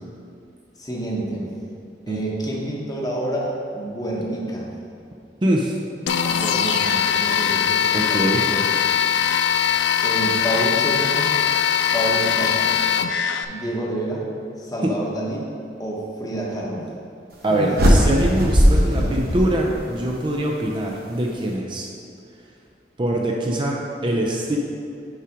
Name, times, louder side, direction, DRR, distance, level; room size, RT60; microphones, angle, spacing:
voice 1, 0.8-1.5 2.1-4.7 6.2-8.7 10.0-11.4 11.9-12.7 13.5-14.2 14.6-15.5 15.8-16.9 17.5-17.7 18.7-19.1, right 1 dB, 20° left, -3 dB, 1.0 m, -28 dB
voice 2, 5.4-5.8 7.9-8.4 17.4-21.9 23.0-24.6, right 1 dB, 25° right, -1 dB, 0.5 m, -23 dB
sound 1, 6.1-13.4, left 8 dB, 85° left, 0.4 m, -21 dB
sound 2, 17.7-20.1, equal, 55° right, 1.0 m, -18 dB
5.6 x 4.9 x 5.0 m, 2.5 s
head